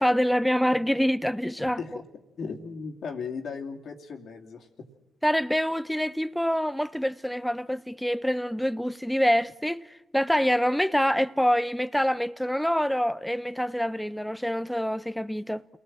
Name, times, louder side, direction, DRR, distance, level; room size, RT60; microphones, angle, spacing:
voice 1, 0.0-1.8 5.2-15.6, equal, 5° left, 0.7 m, -26 dB
voice 2, 2.4-4.7, left 5 dB, 65° left, 2.8 m, -36 dB
28.5 x 19.0 x 7.6 m
hypercardioid pair, 45°, 0 cm